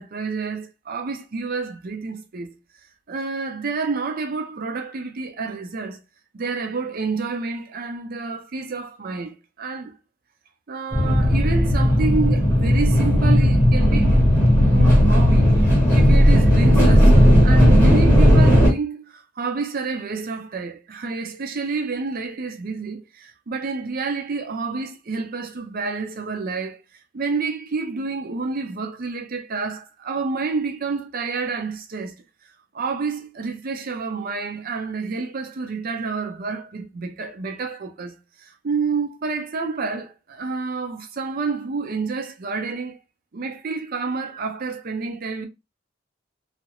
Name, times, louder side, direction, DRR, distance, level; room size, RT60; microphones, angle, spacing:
voice 1, 0.0-2.5 3.1-6.0 6.3-10.0 10.7-14.2 14.7-26.8 27.1-32.1 32.7-38.1 38.4-43.0 43.3-45.5, right 4 dB, 50° right, 0.5 m, -29 dB
sound 1, 10.9-18.7, equal, 10° left, 1.0 m, -15 dB
2.4 x 2.0 x 2.9 m
head